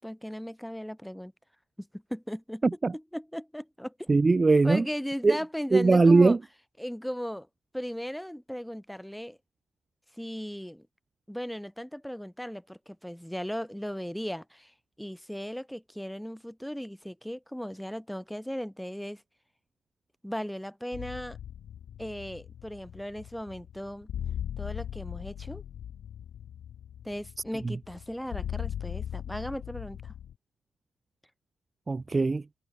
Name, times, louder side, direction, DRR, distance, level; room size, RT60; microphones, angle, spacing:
voice 1, 0.0-1.3 1.8-2.6 2.9-4.1 4.6-6.4 6.8-7.5 7.7-9.4 10.2-10.9 11.3-19.2 20.2-21.4 22.0-24.1 24.6-25.6 27.0-30.1, equal, ahead, 4.4 m, -37 dB
voice 2, 4.1-4.8 5.2-5.4 5.7-6.4 27.6-27.7 31.9-32.4, right 3 dB, 25° right, 1.3 m, -20 dB
sound 1, 20.9-30.3, left 9 dB, 65° left, 4.5 m, -39 dB
cardioid pair, 90°, 0 cm